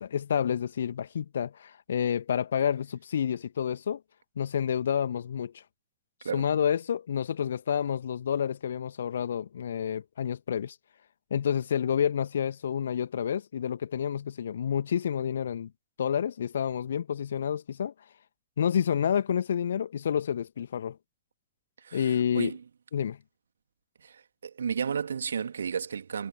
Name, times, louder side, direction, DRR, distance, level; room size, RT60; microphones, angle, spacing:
voice 1, 0.0-4.0 4.4-5.6 6.3-10.8 11.3-15.7 16.0-17.9 18.6-21.0 21.9-22.5 22.9-23.2, left 8 dB, 65° left, 2.2 m, -29 dB
voice 2, 21.8-22.6 24.0-26.3, right 6 dB, 70° right, 2.2 m, -33 dB
figure-of-eight pair, 90°, 0 cm